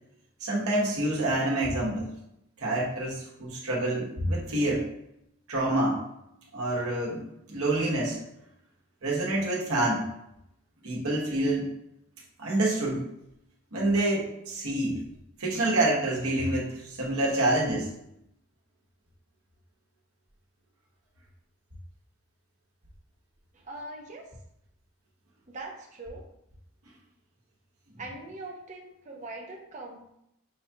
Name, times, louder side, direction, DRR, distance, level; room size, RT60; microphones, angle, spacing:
voice 1, 0.4-2.1 2.6-4.9 5.5-6.0 6.5-8.2 9.0-10.1 10.8-11.7 12.4-13.1 13.7-15.0 15.4-17.9, right 1 dB, 80° right, -4 dB, 1.2 m, -27 dB
voice 2, 23.5-24.3 25.5-26.2 28.0-30.1, right 2 dB, 35° right, 0 dB, 0.6 m, -41 dB
6.3 x 2.3 x 2.8 m, 0.79 s
head